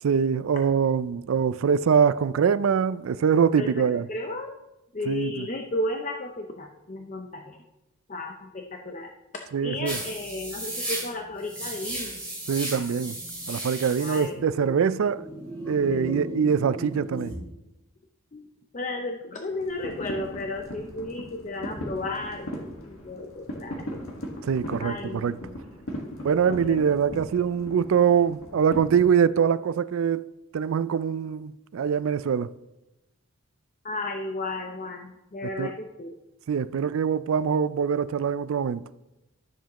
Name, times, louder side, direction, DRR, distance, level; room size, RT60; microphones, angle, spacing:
voice 1, 0.0-4.1 5.1-5.5 9.5-10.0 12.5-13.2 13.5-15.2 15.7-17.3 24.4-25.4 26.2-30.2 30.5-32.5 35.6-35.7 36.5-38.8, right 7 dB, 80° right, 0.4 m, -23 dB
voice 2, 3.6-4.5 4.9-7.6 8.1-9.1 9.6-12.2 14.0-14.4 15.9-16.3 18.3-18.5 18.7-24.0 24.8-25.6 26.5-26.9 33.8-36.2, left 2 dB, 35° left, 0.6 m, -34 dB
sound 1, 9.9-17.4, right 1 dB, 5° left, 2.4 m, -35 dB
sound 2, 19.5-29.0, equal, 85° left, 1.7 m, -39 dB
12.5 x 7.2 x 3.0 m
head